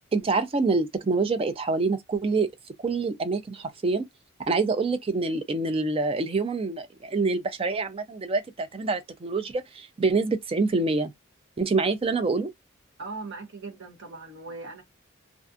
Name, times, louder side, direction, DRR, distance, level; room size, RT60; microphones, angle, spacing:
voice 1, 0.1-2.5 2.8-4.0 4.5-11.1 11.6-12.5, right 3 dB, 25° right, 0.3 m, -26 dB
voice 2, 13.0-14.8, right 3 dB, 55° right, 0.9 m, -39 dB
2.4 x 2.4 x 2.4 m
head